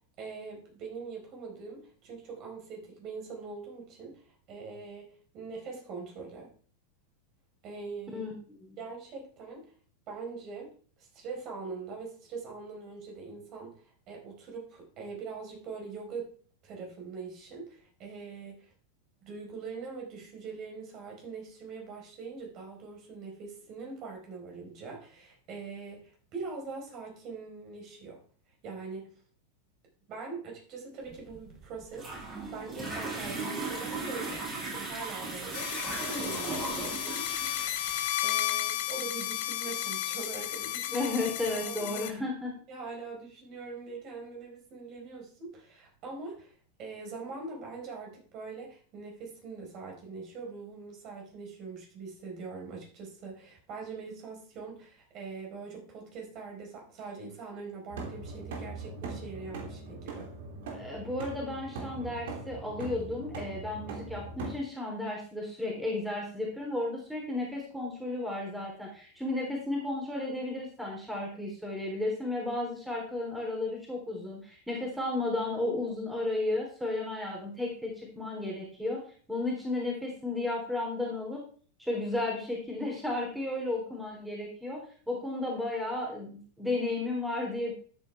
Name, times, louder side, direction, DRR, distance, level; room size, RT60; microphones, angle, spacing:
voice 1, 0.2-4.2 4.5-6.5 7.6-8.3 8.8-9.6 10.1-10.7 11.0-16.3 16.6-18.7 19.2-28.2 28.6-29.1 30.1-37.3 38.2-41.0 41.5-42.0 42.7-46.5 46.8-60.3, right 4 dB, 35° right, 0 dB, 4.4 m, -43 dB
sound 1, 31.1-38.1, right 3 dB, 20° right, 5.7 m, -37 dB
sound 2, 35.5-42.1, left 13 dB, 50° left, 1.1 m, -33 dB
voice 2, 40.9-42.5 60.7-79.0 79.3-81.4 81.8-84.8 85.1-87.7, left 2 dB, 5° right, -2 dB, 3.6 m, -33 dB
sound 3, 57.9-64.5, right 3 dB, 55° right, 3.0 m, -41 dB
13.0 x 8.6 x 3.5 m, 0.43 s
figure-of-eight pair, 90°, 0 cm